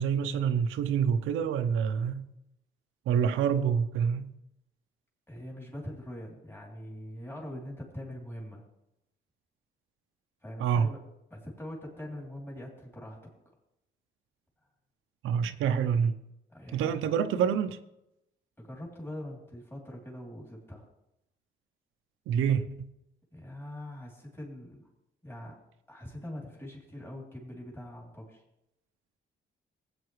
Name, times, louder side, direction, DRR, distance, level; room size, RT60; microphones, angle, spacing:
voice 1, 0.0-2.3 3.1-4.3 10.6-10.9 15.2-16.2 16.7-17.8 22.3-22.6, right 7 dB, 85° right, 0.6 m, -27 dB
voice 2, 5.3-8.6 10.4-11.0 11.3-13.3 16.5-17.1 18.6-20.9 23.3-24.9 25.2-25.6 25.9-28.4, left 1 dB, 10° left, 3.0 m, -43 dB
15.5 x 8.5 x 3.1 m
cardioid pair, 90°, 20 cm